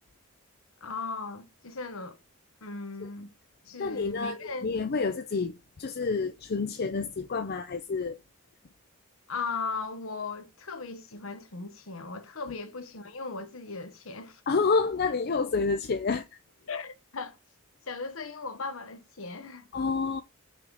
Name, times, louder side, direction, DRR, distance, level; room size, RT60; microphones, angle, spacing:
voice 1, 0.8-2.2 2.6-3.3 3.7-4.7 9.3-14.4 16.7-17.4 17.9-19.7, left 4 dB, 65° left, 1.2 m, -37 dB
voice 2, 3.8-8.2 14.5-16.2 19.7-20.2, left 4 dB, 45° left, 0.5 m, -29 dB
5.7 x 4.8 x 4.0 m
head